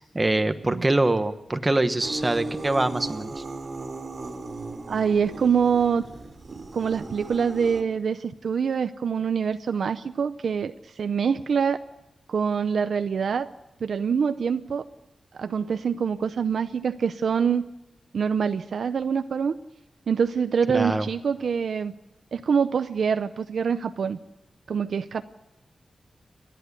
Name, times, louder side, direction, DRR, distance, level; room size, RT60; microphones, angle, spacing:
voice 1, 0.0-3.4 20.7-21.1, right 2 dB, 15° right, 9 dB, 1.1 m, -24 dB
sound 1, 2.0-7.8, right 2 dB, 40° right, 2.7 m, -37 dB
voice 2, 4.9-6.0 6.7-11.8 12.3-13.5 13.8-14.9 15.3-17.7 18.1-19.5 20.1-21.9 22.3-24.2 24.7-25.2, right 6 dB, 70° right, 9 dB, 0.6 m, -25 dB
29.5 x 11.0 x 8.3 m, 0.95 s
wide cardioid pair, 180°, 0 cm